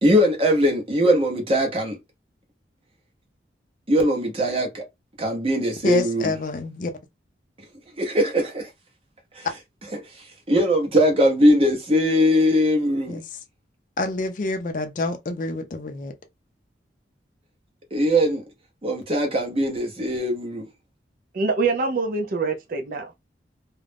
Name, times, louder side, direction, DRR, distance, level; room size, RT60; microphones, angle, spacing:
voice 1, 0.0-2.0 3.9-4.8 5.2-6.3 8.0-8.7 9.3-9.5 9.9-10.0 10.5-13.2 17.9-18.4 18.8-20.7, equal, 30° right, 0.7 m, -20 dB
voice 2, 5.8-6.9 9.4-9.5 13.1-13.2 14.0-16.1, left 2 dB, 45° left, 0.4 m, -27 dB
voice 3, 21.3-23.2, right 4 dB, 50° right, 0.4 m, -25 dB
2.4 x 2.0 x 3.3 m
head